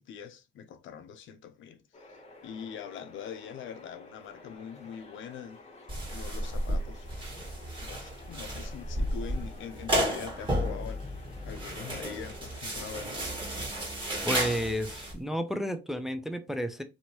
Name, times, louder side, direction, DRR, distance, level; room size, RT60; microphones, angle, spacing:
voice 1, 0.0-1.8 2.4-5.6 6.1-7.1 7.3-13.2, left 8 dB, 75° left, 0.5 m, -43 dB
sound 1, 1.9-13.5, left 3 dB, 35° left, 1.1 m, -52 dB
sound 2, 5.9-15.1, equal, 25° right, 1.7 m, -33 dB
voice 2, 14.2-16.8, equal, ahead, 0.4 m, -31 dB
2.9 x 2.7 x 2.9 m
cardioid pair, 90°, 20 cm